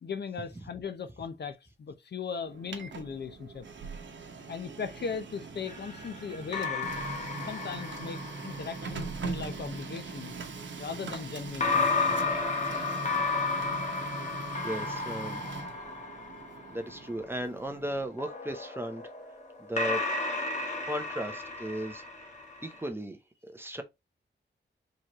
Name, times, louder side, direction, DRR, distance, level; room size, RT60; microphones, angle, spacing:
voice 1, 0.0-3.7 4.5-6.9 7.5-10.3 10.8-12.4, left 6 dB, 60° left, 0.7 m, -38 dB
Printer, 2.4-18.2, right 4 dB, 75° right, 1.0 m, -41 dB
sound 1, 5.7-9.1 11.6-17.0 18.2-22.8, left 4 dB, 40° left, 1.2 m, -33 dB
voice 2, 14.6-15.4 16.7-19.0 19.6-20.0 20.8-22.0 22.6-23.8, equal, 10° right, 0.6 m, -36 dB
4.6 x 3.2 x 2.9 m
wide cardioid pair, 175°, 19 cm